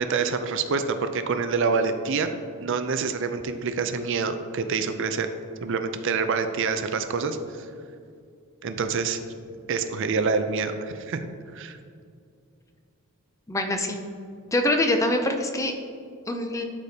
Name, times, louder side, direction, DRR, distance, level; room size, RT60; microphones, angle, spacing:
voice 1, 0.0-2.3 2.6-5.3 5.6-7.4 8.6-9.2 9.7-11.2 11.5-11.8, right 5 dB, 55° right, 8 dB, 0.4 m, -26 dB
voice 2, 13.5-14.0 14.5-15.7 16.3-16.6, left 1 dB, 15° left, 5 dB, 0.4 m, -24 dB
12.0 x 4.9 x 2.8 m, 2.3 s
head